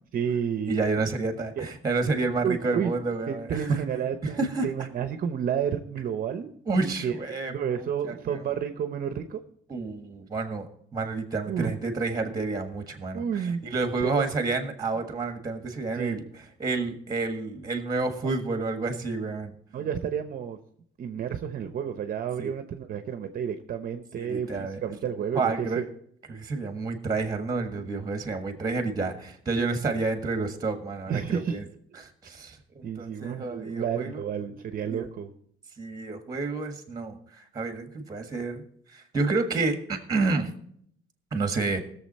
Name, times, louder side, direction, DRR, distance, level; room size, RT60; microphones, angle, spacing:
voice 1, 0.1-0.8 1.6-1.7 2.4-2.9 3.3-6.5 6.8-7.2 7.5-9.4 11.5-11.7 13.1-14.2 15.9-16.2 18.2-18.3 19.7-20.6 21.0-25.9 31.1-31.7 32.8-35.3, right 8 dB, 45° right, 8 dB, 0.8 m, -31 dB
voice 2, 0.7-3.8 4.2-4.7 6.6-8.4 9.7-16.2 16.6-19.5 22.4-22.5 24.2-24.8 25.3-25.9 26.3-31.6 32.0-34.2 34.9-35.1 35.8-38.6 38.9-40.5 41.3-41.8, right 3 dB, 20° right, 7 dB, 1.6 m, -29 dB
19.5 x 7.1 x 4.2 m, 0.66 s
cardioid pair, 150°, 21 cm